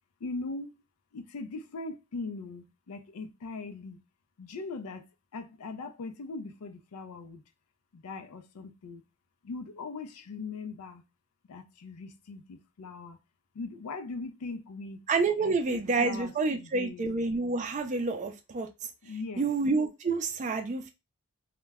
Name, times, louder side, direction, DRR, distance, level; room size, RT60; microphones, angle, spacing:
voice 1, 0.2-0.7 1.1-4.0 4.4-5.1 5.3-7.4 7.9-9.0 9.4-11.0 11.5-13.2 13.5-15.1 15.4-17.1 19.0-19.5, left 3 dB, 85° left, 0.4 m, -40 dB
voice 2, 15.1-18.7 19.4-20.9, right 3 dB, 35° right, 0.4 m, -28 dB
2.2 x 2.0 x 3.4 m
head